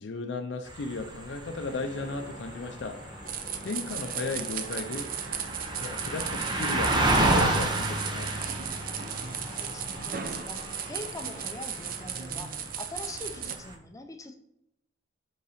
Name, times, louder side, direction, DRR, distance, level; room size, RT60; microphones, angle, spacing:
voice 1, 0.0-3.0 3.6-5.1 5.8-8.3, left 3 dB, 65° left, 5 dB, 0.5 m, -35 dB
sound 1, 0.7-13.8, right 2 dB, 25° right, 0.8 m, -32 dB
sound 2, 1.2-12.7, left 1 dB, 40° left, 1.2 m, -47 dB
sound 3, 3.2-13.6, right 8 dB, 50° right, 0.5 m, -36 dB
voice 2, 9.4-14.3, left 2 dB, 15° left, 5 dB, 0.6 m, -43 dB
5.3 x 3.9 x 4.9 m, 0.78 s
head